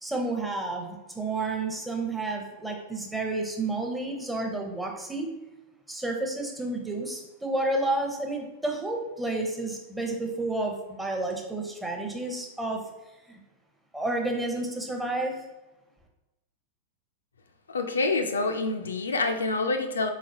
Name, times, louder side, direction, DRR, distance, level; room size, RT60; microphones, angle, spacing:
voice 1, 0.0-5.3 5.9-12.8 13.3-13.4 13.9-15.3, right 2 dB, 10° right, 1 dB, 0.7 m, -30 dB
voice 2, 17.7-20.1, left 3 dB, 70° left, 6 dB, 0.3 m, -27 dB
4.0 x 3.7 x 2.5 m, 1.0 s
figure-of-eight pair, 90°, 0 cm